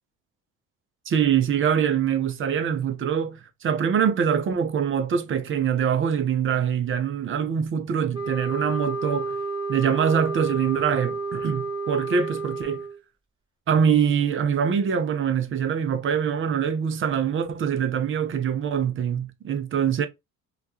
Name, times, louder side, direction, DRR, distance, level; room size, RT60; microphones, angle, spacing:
voice 1, 1.1-9.4 9.7-12.8 13.7-20.1, right 7 dB, 30° right, 0.6 m, -24 dB
sound 1, 8.1-13.0, right 3 dB, 10° right, 0.9 m, -30 dB
2.3 x 2.2 x 2.7 m
hypercardioid pair, 55°, 40 cm